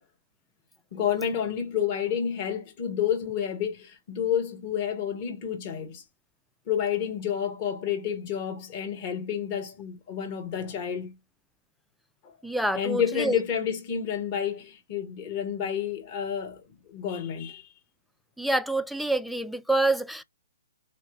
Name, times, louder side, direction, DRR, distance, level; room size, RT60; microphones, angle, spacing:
voice 1, 0.9-6.0 6.7-11.1 12.2-12.3 12.7-17.6, left 8 dB, 40° left, 1.5 m, -30 dB
voice 2, 12.4-13.4 18.4-20.2, right 2 dB, ahead, 0.3 m, -27 dB
4.1 x 3.1 x 3.2 m
hypercardioid pair, 135°, 0 cm